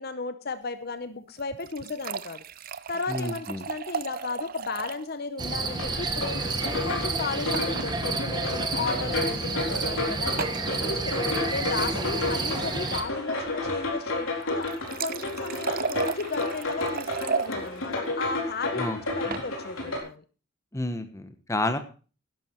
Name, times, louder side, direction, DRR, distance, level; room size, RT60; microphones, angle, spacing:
voice 1, 0.0-2.4 2.9-6.5 6.8-11.2 11.5-14.7 15.0-20.2, left 3 dB, 45° left, 11 dB, 0.7 m, -34 dB
sound 1, 1.4-5.1 5.4-5.5 5.7-5.8 7.5-7.9 8.9-9.0 10.4-10.7 14.4-17.5 19.0-19.5, right 5 dB, 40° right, 0.5 m, -34 dB
voice 2, 3.1-3.7 18.7-19.0 19.3-19.4 20.7-21.8, left 1 dB, 15° left, 9 dB, 1.1 m, -30 dB
sound 2, 5.4-13.0, right 3 dB, 20° right, 1.2 m, -30 dB
sound 3, 5.6-20.0, left 2 dB, 70° left, 4.1 m, -32 dB
12.0 x 11.0 x 4.4 m, 0.36 s
head